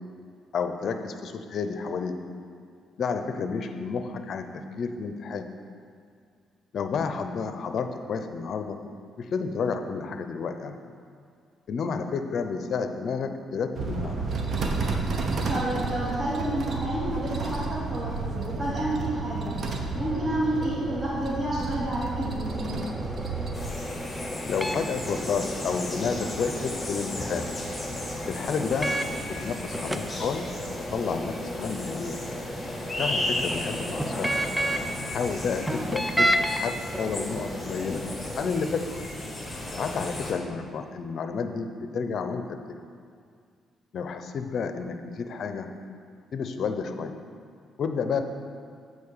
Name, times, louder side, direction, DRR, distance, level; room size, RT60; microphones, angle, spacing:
voice 1, 0.5-2.1 3.0-5.5 6.7-8.8 9.2-10.8 11.7-14.4 24.5-27.5 28.3-28.9 29.3-30.5 30.9-32.2 33.0-34.3 35.1-38.0 38.4-39.0 39.8-42.6 43.9-45.7 46.3-47.1 47.8-48.2, left 5 dB, 60° left, 8 dB, 0.6 m, -30 dB
sound 1, 13.8-23.7, right 3 dB, 55° right, 0.9 m, -31 dB
voice 2, 15.5-19.5 19.9-22.8, right 1 dB, 25° right, -9 dB, 2.2 m, -30 dB
sound 2, 22.5-29.2 29.7-35.0 35.7-36.6 36.9-38.5, equal, ahead, 0.5 m, -32 dB
sound 3, 23.5-40.3, left 1 dB, 20° left, 1.7 m, -35 dB
8.5 x 4.4 x 6.7 m, 2.2 s
cardioid pair, 90°, 0 cm